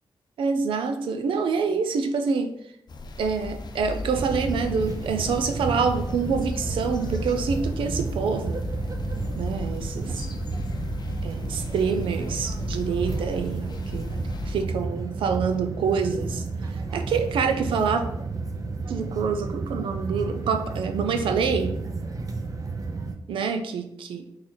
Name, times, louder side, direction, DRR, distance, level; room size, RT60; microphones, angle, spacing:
voice 1, 0.4-2.5 3.2-8.6 9.3-10.3 11.2-13.7 13.9-14.2 14.5-16.4 16.9-18.0 18.9-21.8 23.3-23.8 24.1-24.2, right 5 dB, 90° right, 7 dB, 0.5 m, -26 dB
sound 1, 2.9-14.7, left 3 dB, 55° left, 0.6 m, -36 dB
sound 2, 4.1-23.1, right 3 dB, 45° right, 0.6 m, -32 dB
3.9 x 3.2 x 4.3 m, 0.77 s
cardioid pair, 70°, 9 cm